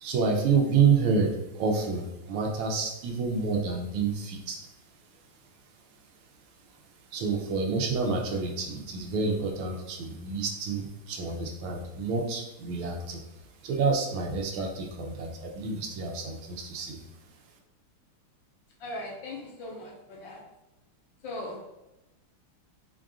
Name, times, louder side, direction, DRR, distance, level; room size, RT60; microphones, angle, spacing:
voice 1, 0.0-4.6 7.1-13.2 13.6-17.0, right 5 dB, 75° right, 2 dB, 1.5 m, -28 dB
voice 2, 18.8-20.4 21.2-21.6, left 1 dB, 65° left, -2 dB, 1.4 m, -39 dB
4.7 x 2.5 x 3.5 m, 0.94 s
omnidirectional pair, 2.4 m